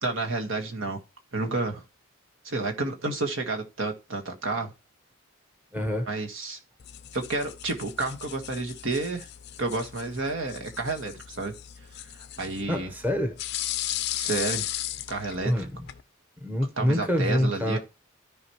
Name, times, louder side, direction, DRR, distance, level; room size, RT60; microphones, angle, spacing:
voice 1, 0.0-1.0 1.3-1.8 2.4-4.7 6.1-6.6 7.1-9.3 9.6-11.5 12.4-12.9 14.2-14.7 15.1-15.7 16.8-17.8, right 3 dB, 60° right, 1.7 m, -30 dB
voice 2, 5.7-6.1 12.7-13.4 15.4-15.7 16.4-17.8, equal, 10° right, 1.1 m, -26 dB
sound 1, 6.8-16.0, left 13 dB, 50° left, 0.5 m, -36 dB
13.5 x 5.1 x 3.1 m
head